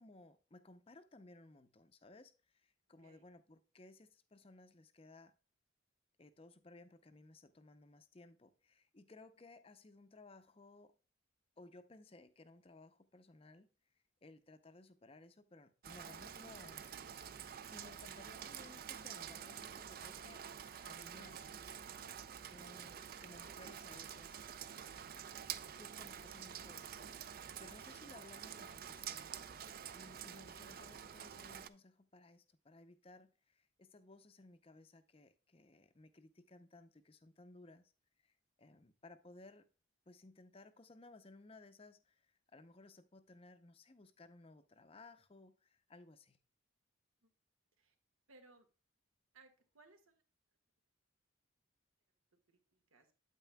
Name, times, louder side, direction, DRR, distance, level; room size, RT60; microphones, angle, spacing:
voice 1, 0.0-5.3 6.2-11.0 11.6-13.7 14.2-20.4 20.8-21.5 22.5-24.4 25.7-37.9 38.2-39.7 40.1-46.4, left 2 dB, 25° left, 0.5 m, -60 dB
Rain, 15.8-31.7, right 8 dB, 45° right, 0.4 m, -48 dB
voice 2, 48.3-48.7 49.3-50.2 52.3-53.1, right 3 dB, 90° right, 1.7 m, -65 dB
9.0 x 8.3 x 2.2 m
head